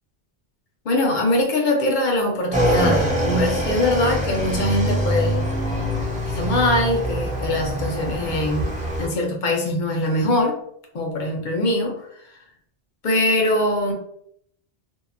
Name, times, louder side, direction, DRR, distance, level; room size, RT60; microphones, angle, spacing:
voice 1, 0.9-5.4 6.3-8.7 9.0-10.6 10.9-12.0 13.0-13.9, left 1 dB, 50° left, 1 dB, 0.7 m, -22 dB
Motorcycle / Engine, 2.5-9.1, right 1 dB, 10° right, 0.5 m, -24 dB
2.7 x 2.1 x 2.4 m, 0.69 s
omnidirectional pair, 1.1 m